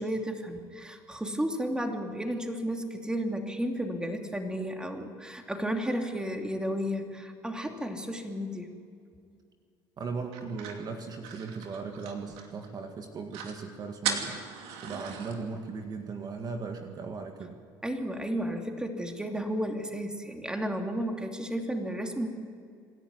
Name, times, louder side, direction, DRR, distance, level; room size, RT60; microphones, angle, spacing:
voice 1, 0.0-8.7 17.8-22.3, equal, 10° right, 3 dB, 2.7 m, -33 dB
voice 2, 10.0-14.4 14.8-17.6, right 4 dB, 40° right, 5 dB, 1.9 m, -38 dB
sound 1, 10.3-12.7 13.0-13.1 13.3-13.6 14.0-15.4, right 7 dB, 75° right, 2.7 m, -37 dB
26.0 x 11.5 x 9.6 m, 2.3 s
supercardioid pair, 85°, 10 cm